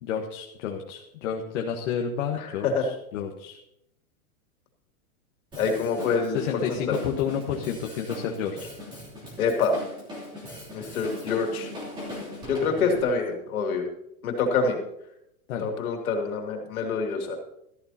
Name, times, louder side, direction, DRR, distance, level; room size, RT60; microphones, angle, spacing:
voice 1, 0.0-3.6 6.3-8.7 15.5-15.7, left 7 dB, 55° left, 2 dB, 1.4 m, -30 dB
voice 2, 2.3-2.8 5.6-6.8 9.4-9.8 10.7-11.7 12.5-13.8 14.2-14.8 15.6-17.4, left 4 dB, 75° left, 3 dB, 2.8 m, -26 dB
Drum kit, 5.5-13.0, left 1 dB, 10° right, 3.1 m, -40 dB
13.5 x 13.5 x 2.9 m, 0.78 s
supercardioid pair, 165°, 43 cm